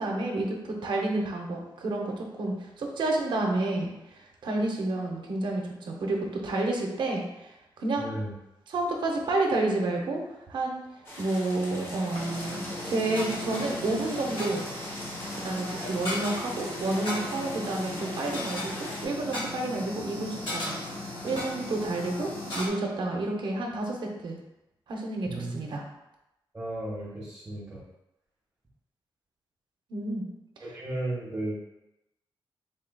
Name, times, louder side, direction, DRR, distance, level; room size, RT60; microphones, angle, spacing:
voice 1, 0.0-8.1 8.7-10.2 10.5-10.8 11.2-14.6 15.4-24.4 24.9-25.9 29.9-30.2 30.6-30.8, right 2 dB, 65° right, 1 dB, 0.7 m, -30 dB
voice 2, 8.0-8.3 25.3-25.5 26.5-27.8 30.6-31.6, right 1 dB, 20° right, -8 dB, 0.8 m, -34 dB
sound 1, 11.0-19.0, equal, 30° left, 0.8 m, -42 dB
sound 2, 12.1-22.7, left 1 dB, 80° left, 1.1 m, -36 dB
3.7 x 3.7 x 2.2 m, 0.90 s
wide cardioid pair, 175°, 9 cm